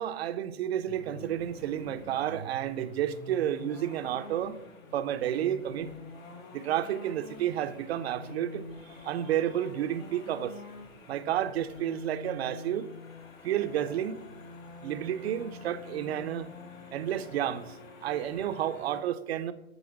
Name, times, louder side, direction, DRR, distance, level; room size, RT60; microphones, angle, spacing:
voice 1, 0.0-4.6 4.9-5.9 6.5-8.7 9.0-10.6 11.1-12.9 13.4-14.2 14.8-16.5 16.9-19.5, right 11 dB, 45° right, 0.8 m, -31 dB
sound 1, 0.9-19.0, left 2 dB, 70° left, 2.7 m, -46 dB
12.5 x 4.3 x 7.1 m
hypercardioid pair, 130°, 42 cm